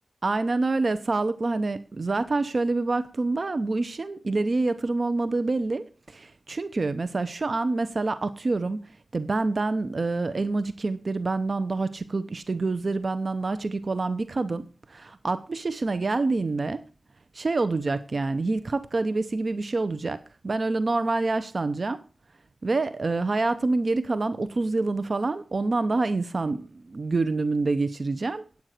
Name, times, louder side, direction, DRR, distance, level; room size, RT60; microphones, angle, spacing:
voice 1, 0.2-16.8 17.3-20.2 20.4-22.0 22.6-28.4, right 3 dB, 55° right, 0.7 m, -27 dB
9.3 x 8.6 x 6.5 m
wide cardioid pair, 80°, 0 cm